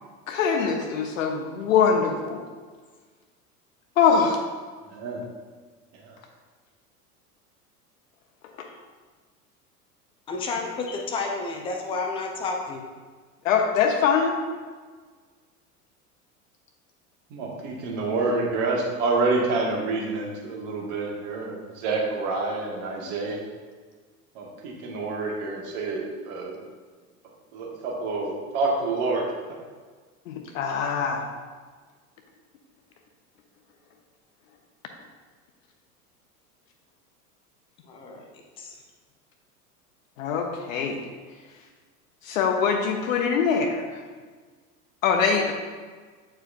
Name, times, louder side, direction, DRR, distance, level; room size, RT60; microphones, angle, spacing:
voice 1, 0.3-2.4 4.0-4.4 8.6-8.7 13.4-14.4 30.3-31.2 40.2-41.0 42.2-44.0 45.0-45.5, left 6 dB, 55° left, 3 dB, 0.9 m, -23 dB
voice 2, 10.3-12.8 37.9-38.2 38.6-38.8, left 3 dB, 15° left, 2 dB, 0.3 m, -31 dB
voice 3, 17.3-23.4 24.4-26.6 27.5-29.2, right 3 dB, 50° right, -2 dB, 1.6 m, -28 dB
8.7 x 4.5 x 2.6 m, 1.5 s
figure-of-eight pair, 85°, 47 cm